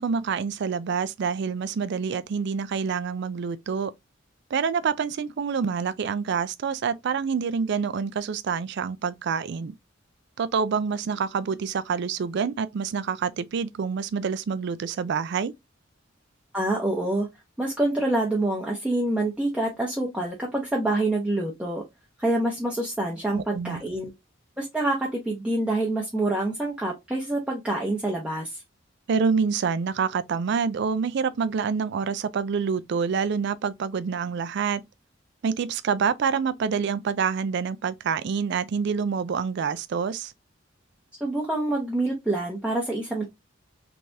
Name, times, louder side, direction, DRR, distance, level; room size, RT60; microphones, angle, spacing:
voice 1, 0.0-3.9 4.5-9.7 10.4-15.5 23.3-23.8 29.1-34.8 35.4-40.3, right 6 dB, 60° right, 0.4 m, -27 dB
voice 2, 16.5-17.3 17.6-21.8 22.2-24.1 24.6-28.6 41.2-43.2, right 2 dB, 5° right, 0.7 m, -26 dB
3.4 x 3.2 x 2.6 m
head